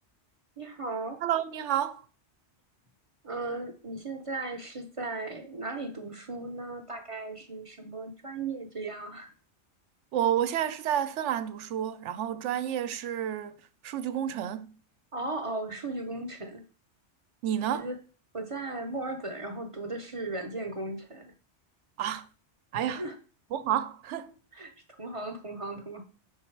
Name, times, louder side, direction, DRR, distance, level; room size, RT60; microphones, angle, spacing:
voice 1, 0.6-1.2 3.2-9.3 15.1-16.6 17.7-18.0 18.3-21.3 22.9-23.1 24.5-24.7 25.0-26.0, right 2 dB, 35° right, 0.6 m, -36 dB
voice 2, 1.2-2.0 10.1-13.6 13.8-14.8 17.4-17.9 22.0-22.3 22.7-23.1 23.5-24.3, right 10 dB, 85° right, 0.9 m, -30 dB
5.5 x 4.0 x 4.5 m
omnidirectional pair, 1.2 m